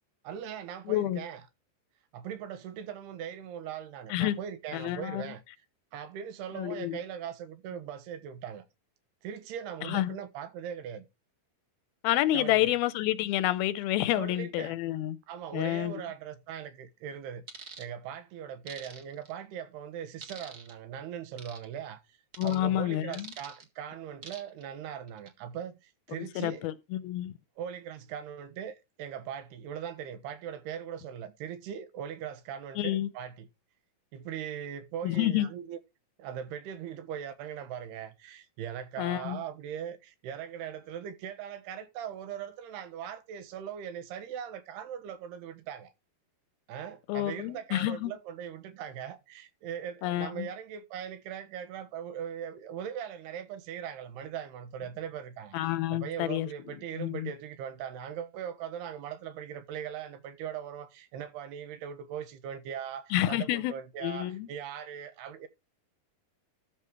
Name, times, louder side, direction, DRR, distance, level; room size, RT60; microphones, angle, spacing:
voice 1, 0.2-1.4 2.1-5.4 5.9-8.6 9.2-11.1 12.3-12.7 14.2-14.8 15.3-22.2 22.4-26.6 27.6-33.5 34.1-35.8 36.2-45.9 46.7-55.6 55.9-65.5, right 9 dB, 80° right, 3.3 m, -40 dB
voice 2, 0.9-1.2 4.1-4.4 4.7-5.3 6.6-7.0 9.8-10.2 12.0-15.2 15.5-16.0 22.4-23.3 26.2-27.3 32.8-33.1 35.0-35.5 39.0-39.4 47.1-48.1 50.0-50.5 55.5-57.3 63.1-63.7 64.0-64.5, left 14 dB, 80° left, 2.4 m, -29 dB
sound 1, 17.5-17.9 18.7-19.3 20.2-20.7 21.4-21.6 22.3-22.6 23.1-23.6 24.2-24.6 25.1-25.3, right 5 dB, 50° right, 1.1 m, -45 dB
13.0 x 5.1 x 4.6 m
omnidirectional pair, 4.6 m